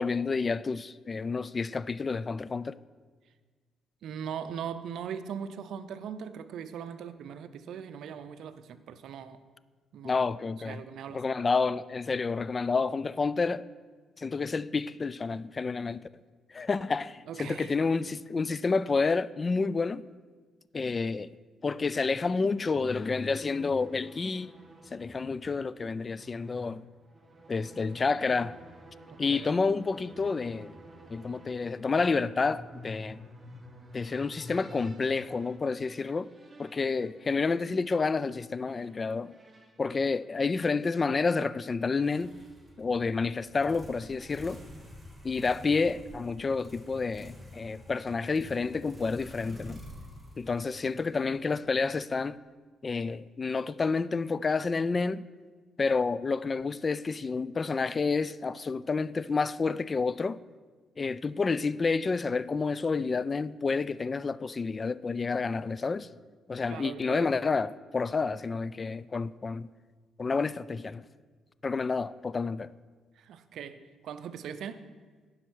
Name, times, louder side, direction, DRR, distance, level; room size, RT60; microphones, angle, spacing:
voice 1, 0.0-2.8 10.0-10.8 11.1-13.6 14.2-16.0 16.5-20.1 20.7-21.4 21.6-24.5 24.9-26.8 27.5-28.6 29.2-30.7 31.1-33.2 33.9-36.3 36.6-39.3 39.8-42.3 42.8-44.6 45.2-49.8 50.4-52.4 52.8-55.2 55.8-60.4 61.0-66.1 66.5-69.7 70.2-71.1 71.6-72.7, left 4 dB, 35° left, 0.3 m, -29 dB
voice 2, 4.0-9.4 9.9-10.1 10.6-11.2 17.3-17.7 29.1-29.6 66.7-67.3 73.2-74.8, right 8 dB, 75° right, 0.6 m, -40 dB
sound 1, 21.9-41.0, equal, 25° right, 1.2 m, -51 dB
sound 2, 42.0-51.8, left 1 dB, 5° right, 1.7 m, -49 dB
9.9 x 5.7 x 6.2 m
cardioid pair, 90°, 0 cm